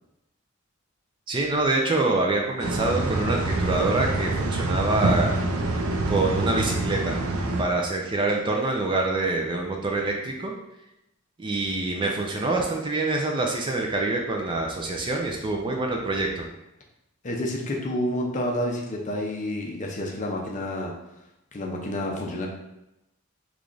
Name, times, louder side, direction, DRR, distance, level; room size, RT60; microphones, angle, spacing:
voice 1, 1.3-5.4 6.1-7.2 7.6-10.5 11.4-16.5, right 2 dB, 25° right, 1 dB, 0.3 m, -26 dB
sound 1, 2.6-7.6, right 2 dB, 80° right, 0.5 m, -26 dB
voice 2, 17.2-20.9 21.5-22.5, left 1 dB, 35° left, 0 dB, 0.5 m, -29 dB
3.2 x 2.4 x 3.8 m, 0.89 s
head